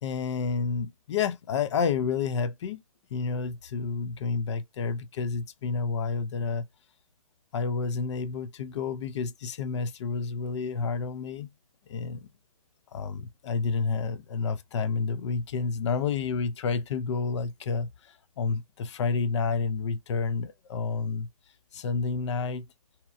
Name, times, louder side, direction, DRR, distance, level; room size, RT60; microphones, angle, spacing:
voice 1, 0.0-2.8 3.1-6.7 7.5-11.5 11.9-12.3 12.9-17.9 18.4-21.3 21.7-22.7, left 5 dB, 50° left, 0.4 m, -30 dB
2.8 x 2.1 x 2.3 m
hypercardioid pair, 150°, 19 cm